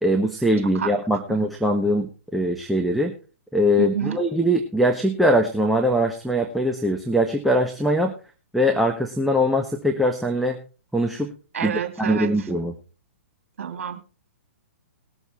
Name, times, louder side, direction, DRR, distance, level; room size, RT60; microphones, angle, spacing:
voice 1, 0.0-3.1 3.5-8.1 8.5-10.6 10.9-11.3 11.6-11.7 12.0-12.7, equal, ahead, 2 dB, 1.3 m, -22 dB
voice 2, 3.8-4.2 11.5-12.5 13.6-14.0, right 8 dB, 65° right, 6 dB, 2.7 m, -29 dB
20.0 x 7.1 x 4.3 m, 0.34 s
hypercardioid pair, 120°, 7 cm